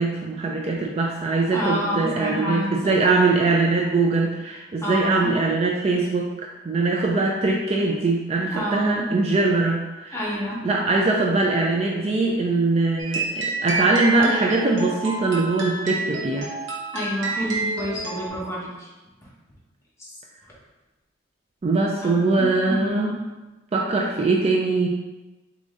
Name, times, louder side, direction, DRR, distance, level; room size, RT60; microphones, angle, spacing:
voice 1, 0.0-10.2 10.6-16.5 21.6-23.2 23.7-24.9, right 3 dB, 35° right, 0 dB, 0.4 m, -22 dB
voice 2, 1.5-2.9 4.8-5.3 8.5-9.1 10.1-10.6 16.9-18.9 20.0-20.1 22.0-23.2, equal, 15° left, -5 dB, 1.0 m, -28 dB
sound 1, 13.0-18.3, right 3 dB, 70° right, 0.9 m, -29 dB
3.9 x 3.1 x 3.5 m, 1.1 s
head